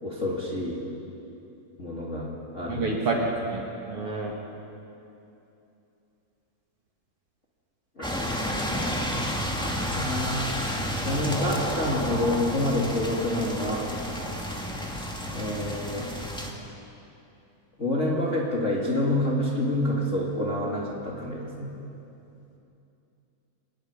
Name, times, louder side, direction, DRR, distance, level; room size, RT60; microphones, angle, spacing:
voice 1, 0.0-0.8 1.8-3.3 8.0-8.1 9.6-10.5 11.0-13.9 15.3-16.1 17.8-21.7, left 1 dB, 25° left, -4 dB, 2.3 m, -28 dB
voice 2, 2.7-4.3, right 3 dB, 50° right, -1 dB, 2.4 m, -28 dB
sound 1, 8.0-16.5, equal, 5° left, 0.7 m, -31 dB
26.0 x 11.0 x 9.7 m, 2.8 s
omnidirectional pair, 4.0 m